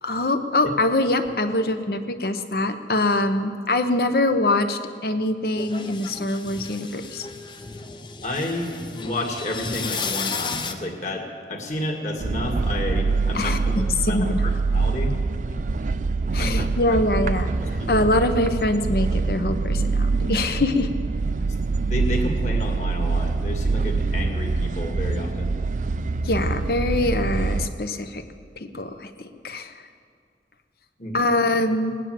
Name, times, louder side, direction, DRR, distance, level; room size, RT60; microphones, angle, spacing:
voice 1, 0.0-7.3 13.3-14.4 16.3-17.5 17.9-20.9 26.2-28.2 28.6-29.7 31.1-32.0, left 2 dB, 60° left, 8 dB, 0.9 m, -24 dB
sound 1, 5.6-10.7, left 5 dB, 25° left, 0.7 m, -33 dB
voice 2, 8.2-13.7 14.1-15.1 16.4-17.0 17.6-18.0 21.4-21.5 21.8-25.5 31.0-31.2, left 1 dB, 40° left, 2 dB, 2.0 m, -30 dB
sound 2, 12.2-27.7, right 3 dB, 45° right, 0.5 m, -25 dB
19.0 x 9.8 x 7.7 m, 2.2 s
head